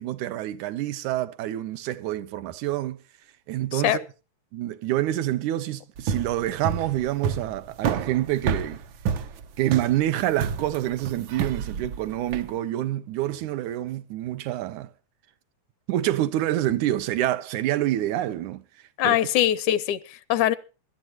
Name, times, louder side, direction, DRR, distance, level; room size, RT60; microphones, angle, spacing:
voice 1, 0.0-3.0 3.5-4.1 4.5-8.8 9.6-14.9 15.9-18.6 19.0-19.2, right 14 dB, 90° right, 2.4 m, -27 dB
sound 1, 6.0-12.5, right 7 dB, 70° right, 1.2 m, -29 dB
voice 2, 19.0-20.6, left 12 dB, 85° left, 2.3 m, -22 dB
23.0 x 12.0 x 2.9 m
omnidirectional pair, 3.4 m